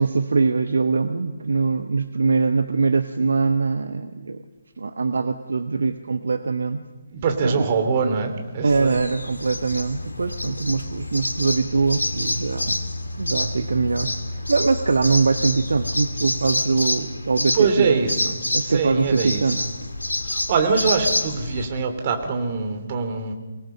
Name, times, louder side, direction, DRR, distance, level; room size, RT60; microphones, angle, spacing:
voice 1, 0.0-4.4 4.8-6.8 7.4-7.7 8.6-12.9 13.2-18.0 18.5-19.6, right 4 dB, 60° right, 9 dB, 1.0 m, -22 dB
voice 2, 7.1-9.0 17.5-19.7 20.2-23.3, right 5 dB, 35° right, 5 dB, 2.8 m, -24 dB
sound 1, 8.7-21.7, left 1 dB, 75° left, 1.9 m, -28 dB
24.0 x 19.5 x 5.7 m, 1.2 s
figure-of-eight pair, 140°, 0 cm